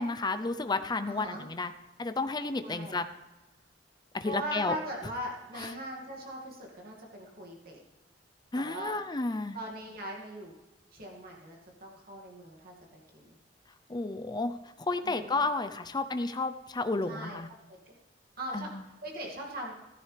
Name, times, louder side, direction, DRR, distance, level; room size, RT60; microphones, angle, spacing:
voice 1, 0.0-1.7 2.0-3.0 4.1-4.8 5.5-5.7 8.5-9.6 13.9-17.5 18.5-18.8, left 3 dB, 25° left, 9 dB, 0.5 m, -32 dB
voice 2, 1.1-1.5 2.6-3.0 4.3-7.8 8.5-9.0 9.5-10.5 10.9-13.4 15.0-15.5 17.1-17.4 17.7-18.0 18.4-18.7 19.0-19.7, right 1 dB, 55° right, -1 dB, 2.1 m, -40 dB
14.5 x 13.5 x 3.3 m, 1.0 s
head